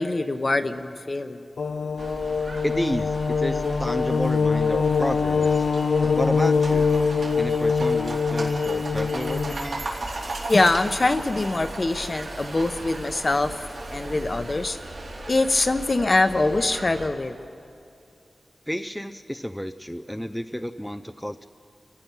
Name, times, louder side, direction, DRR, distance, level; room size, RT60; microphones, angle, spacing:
voice 1, 0.0-1.5 10.5-13.6 13.9-14.8 15.3-17.3, left 2 dB, 40° left, 9 dB, 0.9 m, -23 dB
sound 1, 1.6-9.5, left 5 dB, 75° left, 0.5 m, -23 dB
sound 2, 2.0-17.1, right 2 dB, 75° right, 4.0 m, -36 dB
voice 2, 2.6-5.7 6.2-6.9 7.4-9.9 18.7-21.5, equal, 5° left, 8 dB, 0.5 m, -31 dB
29.5 x 14.5 x 6.1 m, 2.6 s
wide cardioid pair, 110°, 0 cm